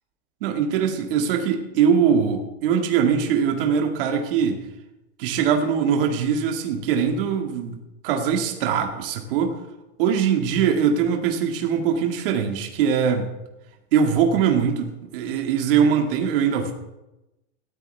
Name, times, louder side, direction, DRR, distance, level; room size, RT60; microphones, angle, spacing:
voice 1, 0.4-4.6 5.2-7.8 8.0-9.6 10.0-13.3 13.9-16.7, right 7 dB, 50° right, 4 dB, 2.0 m, -22 dB
18.0 x 14.0 x 3.5 m, 0.96 s
supercardioid pair, 175°, 35 cm